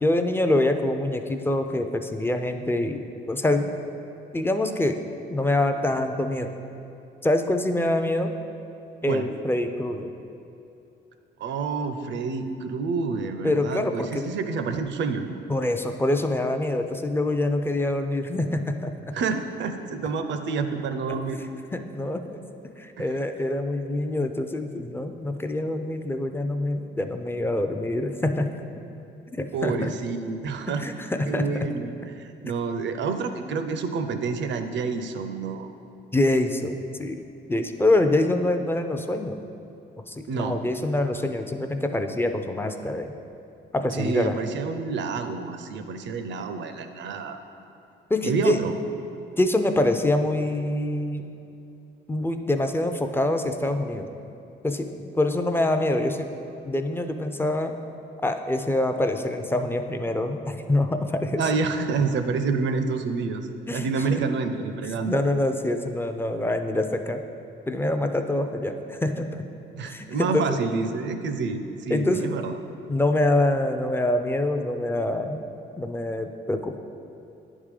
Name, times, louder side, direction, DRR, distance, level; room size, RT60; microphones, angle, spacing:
voice 1, 0.0-3.0 3.3-3.7 4.3-5.0 5.3-6.5 7.2-8.3 9.0-10.1 13.4-14.3 15.5-18.9 21.7-22.4 22.8-28.5 29.3-29.9 30.7-31.7 36.1-37.2 37.5-39.4 40.1-43.1 43.7-44.4 48.1-48.6 49.4-51.2 52.1-54.1 54.6-56.3 56.6-57.7 58.2-61.4 63.7-64.2 65.1-67.2 67.7-69.4 69.8-70.5 71.9-72.3 72.9-75.4 75.8-76.8, left 1 dB, 10° left, 6 dB, 0.4 m, -25 dB
voice 2, 11.4-15.4 19.1-21.4 23.0-23.1 29.5-30.8 31.3-35.7 40.3-40.6 43.9-47.4 48.2-48.8 61.4-65.2 69.7-72.5, right 4 dB, 65° right, 8 dB, 0.6 m, -28 dB
9.7 x 3.7 x 4.9 m, 2.7 s
cardioid pair, 90°, 20 cm